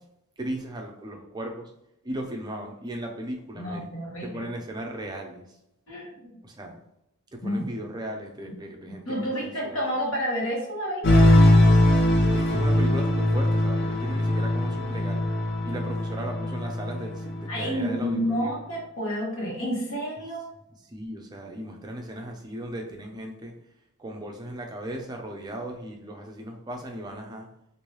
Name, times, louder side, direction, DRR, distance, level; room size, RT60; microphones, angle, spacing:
voice 1, 0.4-1.7 2.0-3.9 4.2-5.4 6.4-6.8 7.3-9.8 12.3-15.2 15.6-18.5 20.9-23.5 24.0-27.5, right 1 dB, 20° right, 2 dB, 0.4 m, -36 dB
voice 2, 3.5-4.5 5.9-6.4 7.4-7.7 9.1-11.1 17.5-20.5, equal, 70° left, -4 dB, 1.3 m, -30 dB
sound 1, 11.0-17.8, left 1 dB, 50° left, 0.5 m, -21 dB
3.0 x 2.6 x 3.1 m, 0.82 s
head